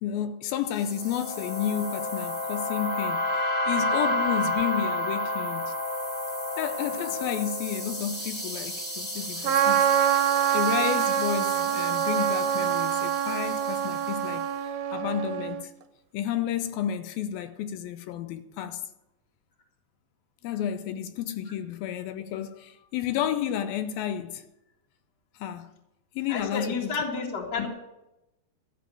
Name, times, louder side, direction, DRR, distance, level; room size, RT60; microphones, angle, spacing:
voice 1, 0.0-5.7 6.6-14.4 14.9-15.7 16.1-18.9 20.4-24.4 25.4-25.8 26.2-27.0 27.6-27.7, left 10 dB, 80° left, 2.3 m, -31 dB
sound 1, 0.7-14.1, left 1 dB, 5° left, 1.7 m, -31 dB
Trumpet, 9.4-15.6, right 10 dB, 75° right, 2.6 m, -25 dB
voice 2, 26.3-27.7, left 4 dB, 35° left, 1.9 m, -31 dB
13.5 x 7.0 x 9.0 m
omnidirectional pair, 4.6 m